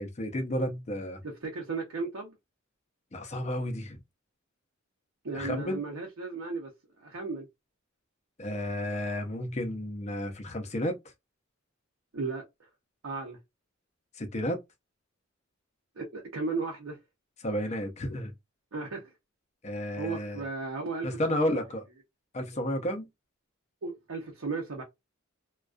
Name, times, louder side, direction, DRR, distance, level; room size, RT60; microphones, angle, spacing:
voice 1, 0.0-1.2 3.1-4.0 5.3-5.8 8.4-11.0 14.2-14.6 17.4-18.3 19.6-20.4 21.0-21.8 22.3-23.1, equal, 35° left, 0.5 m, -32 dB
voice 2, 1.2-2.3 5.2-6.7 7.0-7.5 12.1-12.4 13.0-13.4 16.0-17.0 18.7-19.1 20.0-21.5 23.8-24.8, right 4 dB, 80° right, 0.6 m, -35 dB
2.3 x 2.2 x 2.4 m
head